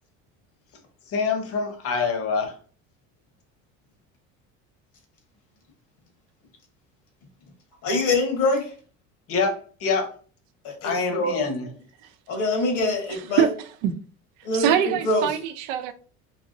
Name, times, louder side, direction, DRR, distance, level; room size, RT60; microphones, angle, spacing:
voice 1, 1.1-2.5 9.3-10.1 10.8-11.7, left 4 dB, 50° left, 1.0 m, -25 dB
voice 2, 7.8-8.7 10.6-11.4 12.3-13.5 14.4-14.7 15.0-15.2, left 2 dB, 80° left, 1.6 m, -24 dB
voice 3, 13.1-13.9 14.5-15.9, right 9 dB, 90° right, 0.5 m, -24 dB
3.4 x 2.9 x 2.6 m
cardioid pair, 120°, 29 cm